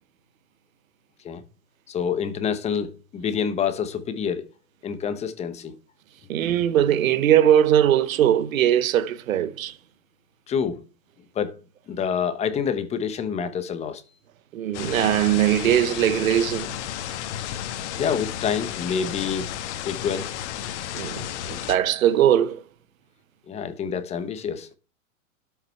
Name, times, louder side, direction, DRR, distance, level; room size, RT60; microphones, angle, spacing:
voice 1, 1.9-4.5 4.8-5.7 10.5-10.8 11.3-11.5 11.9-14.0 18.0-19.5 19.9-20.3 23.5-24.7, left 7 dB, 15° left, 0.9 m, -27 dB
voice 2, 6.3-9.7 14.5-16.8 20.9-22.6, right 10 dB, 75° right, 1.0 m, -20 dB
sound 1, 14.7-21.8, left 11 dB, 55° left, 1.4 m, -33 dB
12.5 x 5.7 x 4.5 m
hypercardioid pair, 140°, 41 cm